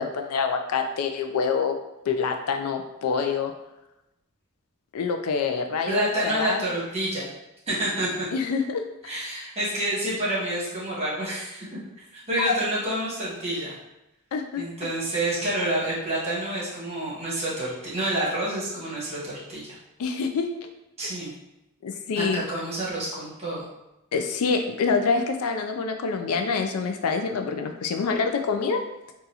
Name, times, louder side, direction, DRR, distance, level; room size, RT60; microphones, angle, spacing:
voice 1, 0.0-1.7 2.1-3.5 4.9-6.6 8.3-8.8 12.4-12.5 14.3-14.6 20.0-20.5 21.8-22.4 24.1-28.8, left 5 dB, 80° left, 5 dB, 0.4 m, -26 dB
voice 2, 5.9-7.3 7.7-8.1 9.0-11.8 12.3-13.8 14.6-19.7 21.0-21.3 22.1-23.6, right 1 dB, 30° right, -7 dB, 1.2 m, -28 dB
3.9 x 2.4 x 2.7 m, 0.93 s
head